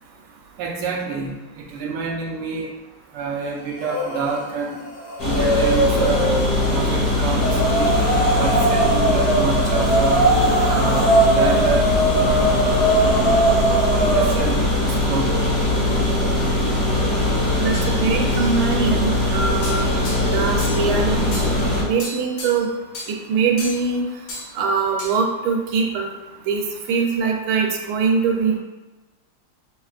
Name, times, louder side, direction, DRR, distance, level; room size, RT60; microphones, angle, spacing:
voice 1, 0.6-1.4 1.7-2.7 3.1-4.8 5.2-6.4 6.7-7.9 8.4-10.3 10.6-11.8 12.2-12.7 14.0-14.6 15.0-15.4, right 4 dB, 70° right, -2 dB, 1.2 m, -27 dB
sound 1, 3.8-4.4 4.7-6.6 7.3-14.5, right 2 dB, 70° left, 1.7 m, -20 dB
sound 2, 5.2-21.8, left 1 dB, 40° left, 0.7 m, -21 dB
voice 2, 17.6-19.9 20.3-21.5 21.8-22.7 23.1-24.0 24.5-26.1 26.5-26.6 26.9-28.6, right 5 dB, 90° right, 0 dB, 1.6 m, -22 dB
sound 3, 17.7-18.6 19.6-20.9 21.3-21.6 22.0-22.7 22.9-23.1 23.6-23.9 24.3-24.5 25.0-25.2, left 2 dB, 90° left, 1.9 m, -34 dB
6.3 x 2.2 x 2.4 m, 1.2 s
omnidirectional pair, 2.3 m